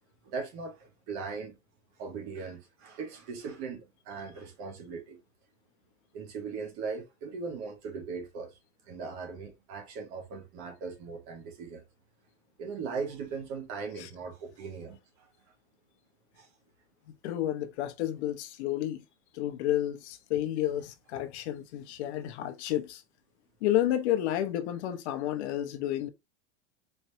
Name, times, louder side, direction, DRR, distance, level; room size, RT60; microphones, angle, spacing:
voice 1, 0.2-1.6 2.0-5.2 6.1-8.6 8.9-11.8 12.6-15.3 16.3-16.5, right 5 dB, 45° right, 1.5 m, -39 dB
voice 2, 17.2-19.0 19.3-23.0 23.6-26.1, left 12 dB, 60° left, 0.8 m, -31 dB
4.3 x 3.3 x 2.7 m
supercardioid pair, 150°, 37 cm